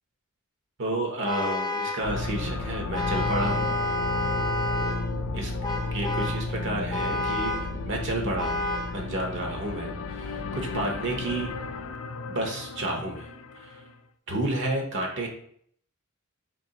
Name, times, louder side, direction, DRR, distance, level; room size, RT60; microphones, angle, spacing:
voice 1, 0.8-3.8 5.3-5.5 5.9-11.5 12.3-13.3 13.6-13.8 14.3-15.3, right 1 dB, 60° right, 1 dB, 0.8 m, -31 dB
Vehicle horn car horn honking, 1.2-2.1 2.9-5.1 5.6-6.5 6.9-7.8 8.4-9.0, left 1 dB, 20° left, 0.7 m, -30 dB
sound 1, 2.0-13.9, left 3 dB, 80° left, 0.3 m, -33 dB
3.8 x 3.1 x 2.9 m, 0.62 s
head